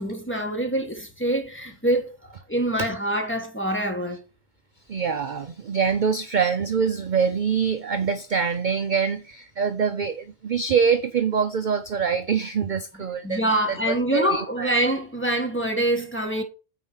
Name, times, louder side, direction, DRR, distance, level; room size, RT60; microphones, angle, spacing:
voice 1, 0.0-4.2 13.2-16.4, right 1 dB, 10° left, 1.3 m, -25 dB
voice 2, 4.9-13.4 13.9-14.7, right 6 dB, 50° right, 0.6 m, -24 dB
8.9 x 4.3 x 5.6 m
omnidirectional pair, 1.3 m